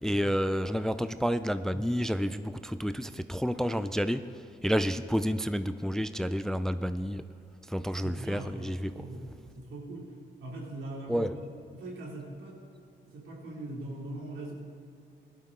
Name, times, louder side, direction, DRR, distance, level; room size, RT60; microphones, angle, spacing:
voice 1, 0.0-4.3 4.6-7.2 7.7-8.9 11.1-11.3, equal, ahead, 12 dB, 0.4 m, -30 dB
voice 2, 7.8-12.7 13.0-14.5, right 1 dB, 75° right, -2 dB, 2.9 m, -42 dB
16.5 x 12.0 x 3.8 m, 2.4 s
supercardioid pair, 65°, 20 cm